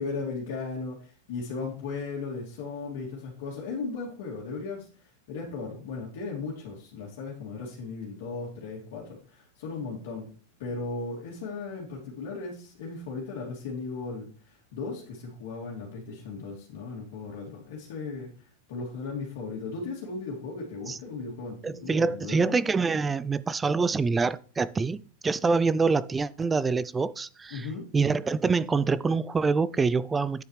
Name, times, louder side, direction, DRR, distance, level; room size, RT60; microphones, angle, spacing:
voice 1, 0.0-10.3 10.6-22.6 27.5-27.9, left 4 dB, 65° left, 2.7 m, -36 dB
voice 2, 21.6-27.7 27.9-30.4, right 4 dB, 15° right, 0.3 m, -26 dB
9.3 x 7.0 x 3.3 m
supercardioid pair, 150°, 0 cm